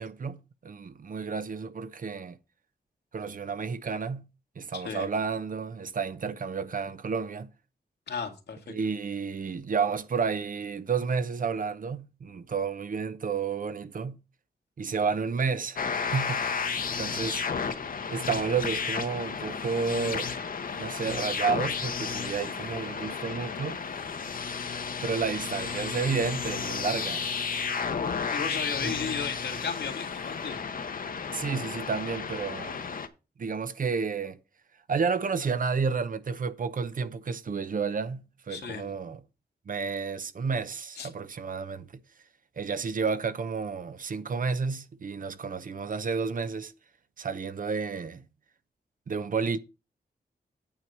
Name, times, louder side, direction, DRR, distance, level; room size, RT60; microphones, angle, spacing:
voice 1, 0.0-2.4 3.1-4.3 4.6-7.5 8.7-14.2 14.8-17.4 18.1-20.3 20.7-23.8 25.0-27.2 28.8-29.0 31.3-32.8 33.4-34.4 34.9-39.2 39.7-41.9 42.6-46.7 47.2-48.3 49.1-49.6, right 5 dB, 55° right, 0.8 m, -31 dB
voice 2, 4.7-5.1 8.1-8.8 28.3-30.6 38.5-38.9 41.0-41.1, left 6 dB, 90° left, 2.0 m, -34 dB
sound 1, 15.8-33.1, left 6 dB, 55° left, 0.9 m, -33 dB
9.0 x 4.6 x 6.7 m
wide cardioid pair, 105°, 17 cm